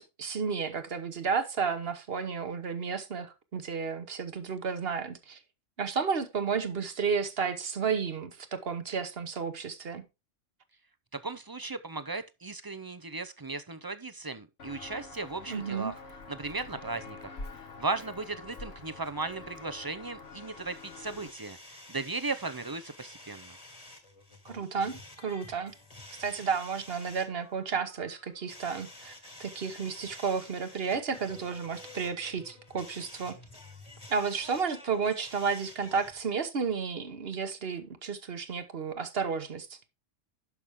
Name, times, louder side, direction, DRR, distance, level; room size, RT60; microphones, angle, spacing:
voice 1, 0.0-5.4 5.8-10.0 15.5-15.9 24.4-25.7 26.2-29.1 29.4-33.4 34.1-39.8, right 5 dB, 55° right, 1.3 m, -32 dB
voice 2, 11.1-16.0 16.3-23.6, right 3 dB, 30° right, 0.4 m, -37 dB
Walk footsteps, 14.6-21.3, left 3 dB, 55° left, 1.4 m, -46 dB
sound 1, 20.2-36.2, left 2 dB, 30° left, 1.9 m, -50 dB
11.5 x 6.0 x 3.6 m
omnidirectional pair, 1.3 m